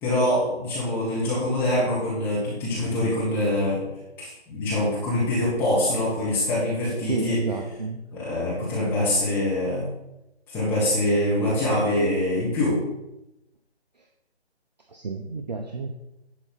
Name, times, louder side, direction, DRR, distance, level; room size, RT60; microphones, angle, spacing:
voice 1, 0.0-3.8 4.2-7.4 8.1-9.9 10.5-12.8, left 1 dB, 5° left, -8 dB, 1.4 m, -24 dB
voice 2, 7.0-8.0 14.9-15.9, right 4 dB, 40° right, 3 dB, 0.8 m, -30 dB
10.5 x 4.0 x 5.9 m, 0.92 s
figure-of-eight pair, 155°, 33 cm